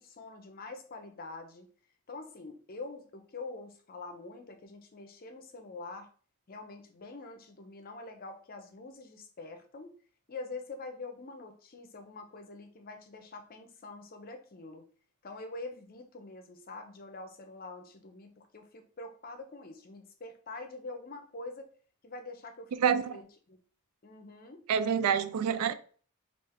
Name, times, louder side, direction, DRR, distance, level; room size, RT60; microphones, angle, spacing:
voice 1, 0.0-1.7 2.1-6.1 6.5-9.9 10.3-14.8 15.2-21.7 22.0-23.6 24.0-24.6, left 3 dB, 40° left, 0.6 m, -45 dB
voice 2, 22.8-23.2 24.7-25.7, right 7 dB, 90° right, 0.3 m, -27 dB
3.2 x 2.5 x 3.6 m
head